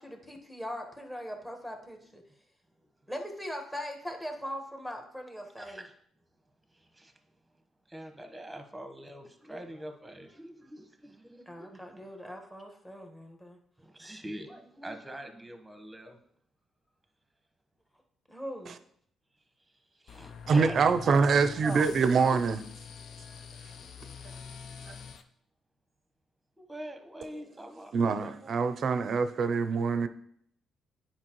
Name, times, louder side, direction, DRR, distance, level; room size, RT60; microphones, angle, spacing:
voice 1, 0.0-2.2 3.1-5.8 11.4-13.6 18.3-18.8, equal, 10° left, 1.3 m, -40 dB
voice 2, 5.6-5.9 6.7-7.1 7.9-12.1 13.8-16.2 20.0-21.9 24.1-24.2 26.6-28.6, right 1 dB, 10° right, 1.1 m, -44 dB
sound 1, 20.1-25.2, left 6 dB, 65° left, 0.5 m, -45 dB
voice 3, 20.5-22.6 24.9-25.0 27.9-30.1, right 5 dB, 55° right, 0.5 m, -25 dB
9.6 x 4.4 x 3.0 m
cardioid pair, 90°, 0 cm